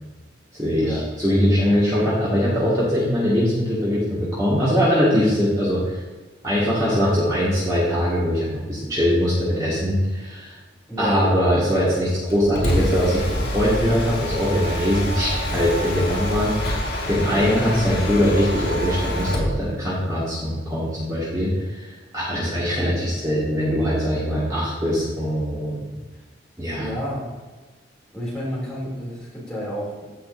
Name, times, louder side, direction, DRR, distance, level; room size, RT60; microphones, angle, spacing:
voice 1, 0.5-6.0 6.4-10.5 11.0-16.5 17.1-21.5 21.8-21.9 22.1-25.8 26.6-26.9, equal, 20° right, -9 dB, 2.1 m, -21 dB
Mechanisms, 12.3-19.6, equal, 65° left, 3.0 m, -26 dB
voice 2, 26.7-27.3 28.1-30.1, equal, 5° left, -7 dB, 3.1 m, -30 dB
15.5 x 5.5 x 2.8 m, 1.3 s
head